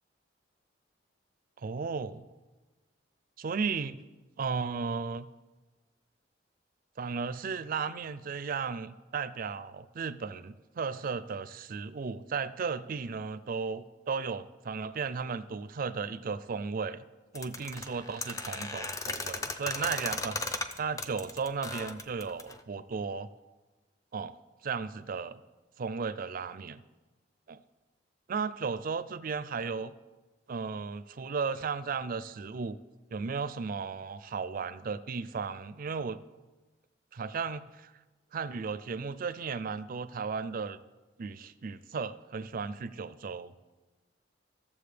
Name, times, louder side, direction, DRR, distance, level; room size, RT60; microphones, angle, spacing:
voice 1, 1.6-2.3 3.4-4.0 4.4-5.3 7.0-17.0 17.3-23.3 24.1-24.3 24.6-25.4 25.8-26.8 27.5-27.6 28.3-29.9 30.5-32.8 33.1-36.2 37.1-37.9 38.3-40.8 41.2-43.5, right 5 dB, 50° right, 14 dB, 0.4 m, -35 dB
sound 1, 17.3-22.6, left 3 dB, 15° left, 0.5 m, -36 dB
14.5 x 7.1 x 3.4 m, 1.2 s
head